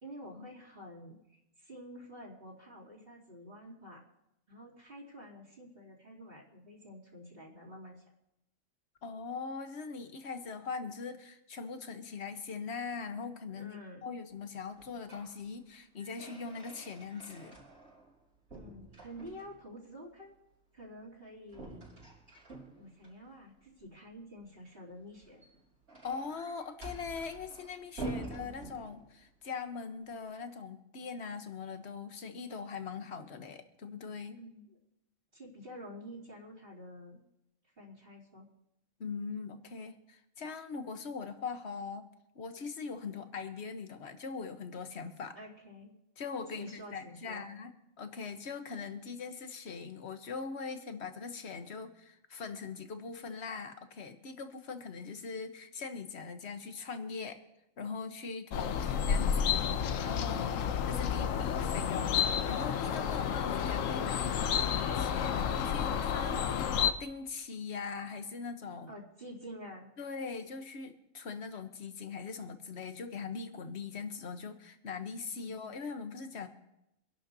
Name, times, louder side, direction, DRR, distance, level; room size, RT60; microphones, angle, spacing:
voice 1, 0.0-4.0 4.5-8.0 13.5-14.1 18.5-20.4 20.7-21.8 22.7-25.4 28.2-28.8 34.4-34.8 35.3-37.2 37.8-38.4 45.3-45.9 46.5-47.5 58.5-58.8 60.5-60.7 68.9-69.9 75.4-75.9, equal, 45° right, -8 dB, 3.3 m, -49 dB
voice 2, 9.0-13.8 14.0-17.6 26.0-34.4 39.0-42.1 42.3-45.4 46.2-47.7 48.0-57.4 57.8-60.6 60.9-62.1 62.4-64.6 65.0-68.9 70.0-76.5, left 5 dB, 55° left, 8 dB, 1.3 m, -41 dB
sound 1, 14.7-15.4 15.7-18.2 18.5-19.7 21.5-23.1 25.1-29.3, right 2 dB, 65° right, 5.0 m, -47 dB
sound 2, 58.5-66.9, left 8 dB, 80° left, 1.1 m, -31 dB
25.5 x 11.5 x 2.7 m, 0.85 s
omnidirectional pair, 1.3 m